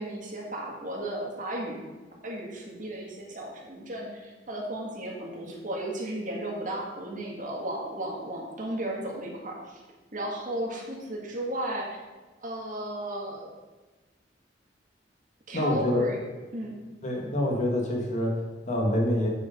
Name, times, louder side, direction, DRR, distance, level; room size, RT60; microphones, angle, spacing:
voice 1, 0.0-1.8 2.2-9.8 10.1-12.0 12.4-13.5 15.5-16.2 16.5-16.7, right 1 dB, 45° right, -1 dB, 1.8 m, -34 dB
voice 2, 15.5-16.1 17.0-19.3, left 1 dB, 45° left, 0 dB, 1.6 m, -26 dB
8.5 x 5.0 x 5.2 m, 1.2 s
head